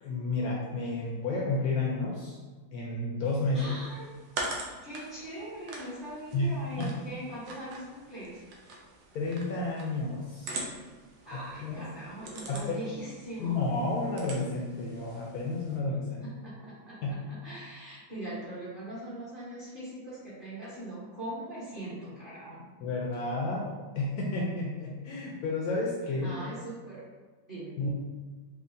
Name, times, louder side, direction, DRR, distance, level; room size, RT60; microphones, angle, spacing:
voice 1, 0.0-2.4 2.7-3.7 6.3-6.5 6.8-6.9 9.1-10.7 11.3-11.8 12.5-12.7 13.4-16.3 17.0-17.1 22.8-26.3 27.8-27.9, left 2 dB, 70° left, -3 dB, 0.9 m, -31 dB
sound 1, 3.3-15.8, right 2 dB, 75° right, 1.3 m, -44 dB
voice 2, 3.5-4.1 4.8-8.4 11.2-13.6 16.4-17.0 17.3-22.7 26.2-27.0 27.5-27.8, right 1 dB, 35° right, -11 dB, 1.0 m, -41 dB
4.6 x 2.4 x 2.5 m, 1.4 s
omnidirectional pair, 2.0 m